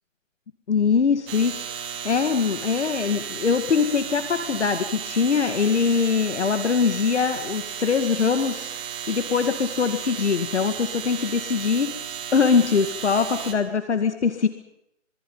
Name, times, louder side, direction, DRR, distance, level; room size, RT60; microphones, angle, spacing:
voice 1, 0.7-8.7 9.1-11.9 12.3-14.5, left 5 dB, 60° left, 8 dB, 2.2 m, -22 dB
sound 1, 1.3-13.5, right 8 dB, 10° right, 1.6 m, -34 dB
26.5 x 24.0 x 5.6 m, 0.80 s
hypercardioid pair, 155°, 39 cm